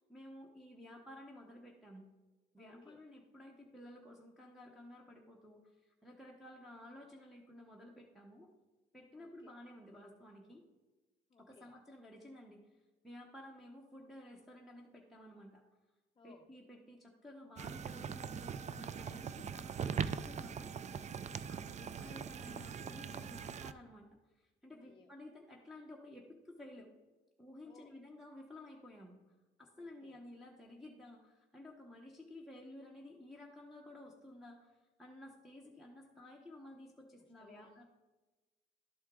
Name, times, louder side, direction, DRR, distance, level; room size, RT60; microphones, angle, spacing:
voice 1, 0.1-2.1 2.5-8.5 8.9-10.6 11.4-12.6 13.0-15.6 16.2-20.7 21.3-24.1 24.3-26.9 27.4-37.8, left 1 dB, ahead, -2 dB, 0.9 m, -54 dB
voice 2, 2.6-3.0 9.1-9.6 11.3-11.7 16.2-16.5 21.3-21.6 24.8-25.1 27.6-28.0 29.8-30.2 37.4-37.8, left 5 dB, 25° left, 4 dB, 0.6 m, -63 dB
sound 1, 17.6-23.7, right 7 dB, 35° right, 0.4 m, -41 dB
11.5 x 4.4 x 3.7 m, 1.2 s
cardioid pair, 90°, 20 cm